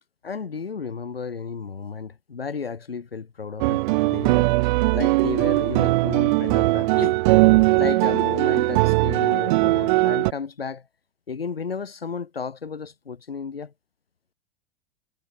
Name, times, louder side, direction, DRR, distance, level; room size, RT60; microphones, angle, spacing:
voice 1, 0.2-3.8 4.1-4.5 4.9-7.2 7.8-10.8 11.3-13.7, left 5 dB, 85° left, 7.5 m, -32 dB
sound 1, 3.6-10.3, right 21 dB, 55° right, 0.7 m, -20 dB
figure-of-eight pair, 90°, 29 cm